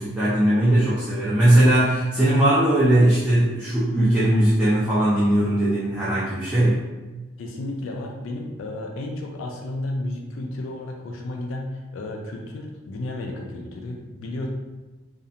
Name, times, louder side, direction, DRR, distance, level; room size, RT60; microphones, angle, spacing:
voice 1, 0.0-6.8, right 1 dB, 5° right, -10 dB, 0.4 m, -19 dB
voice 2, 7.4-14.5, left 1 dB, 75° left, 1 dB, 0.3 m, -32 dB
2.8 x 2.0 x 2.4 m, 1.2 s
head